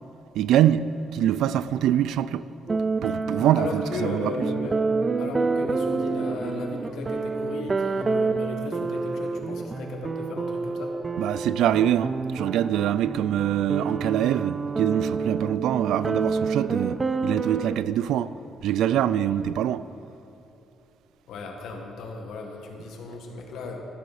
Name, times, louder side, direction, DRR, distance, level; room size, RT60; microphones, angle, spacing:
voice 1, 0.4-0.9 1.1-2.5 3.0-4.3 11.2-18.3 18.6-19.8, right 11 dB, 85° right, 0.3 m, -24 dB
sound 1, 2.7-17.8, right 4 dB, 30° right, 0.6 m, -28 dB
voice 2, 3.6-4.8 5.2-11.0 21.3-23.8, left 3 dB, 80° left, 1.8 m, -35 dB
14.0 x 12.0 x 4.2 m
cardioid pair, 90°, 0 cm